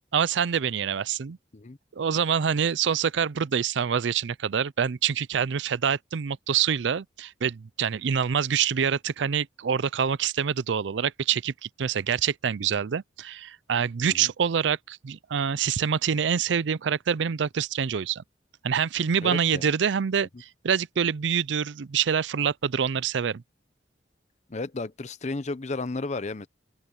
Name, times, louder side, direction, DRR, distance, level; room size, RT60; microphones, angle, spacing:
voice 1, 0.1-1.4 2.0-18.2 18.6-23.4, right 7 dB, 80° right, 0.5 m, -26 dB
voice 2, 19.2-19.7 24.5-26.5, left 3 dB, 40° left, 0.7 m, -33 dB
open air
head